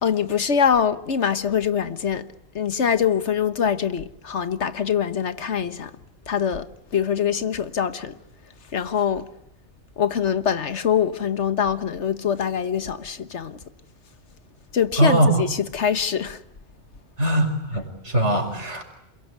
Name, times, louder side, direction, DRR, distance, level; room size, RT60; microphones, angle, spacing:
voice 1, 0.0-2.2 2.5-5.9 6.3-6.7 6.9-8.2 8.7-9.3 10.0-13.6 14.7-16.4, left 7 dB, 85° left, 1.6 m, -23 dB
voice 2, 15.0-15.3 17.2-18.8, equal, 85° right, 5.4 m, -21 dB
28.5 x 22.0 x 9.4 m
omnidirectional pair, 1.1 m